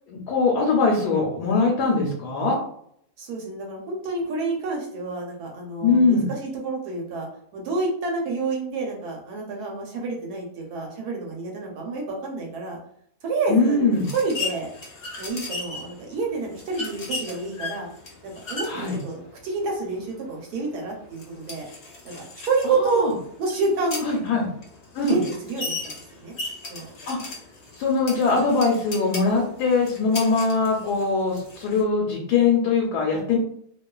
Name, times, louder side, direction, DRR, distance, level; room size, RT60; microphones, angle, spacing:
voice 1, 0.1-2.6 5.8-6.2 13.5-14.0 18.7-19.0 22.8-23.1 24.0-24.5 24.9-25.2 27.1-27.3 27.7-33.4, left 4 dB, 90° left, -1 dB, 1.1 m, -22 dB
voice 2, 3.2-12.8 13.2-14.7 15.2-17.9 18.2-21.7 22.0-23.1 23.4-24.2 25.0-26.3 26.7-26.9, right 3 dB, 80° right, 0 dB, 1.2 m, -28 dB
sound 1, 13.9-31.8, left 3 dB, 50° left, 0.8 m, -37 dB
2.5 x 2.3 x 2.2 m, 0.67 s
omnidirectional pair, 1.7 m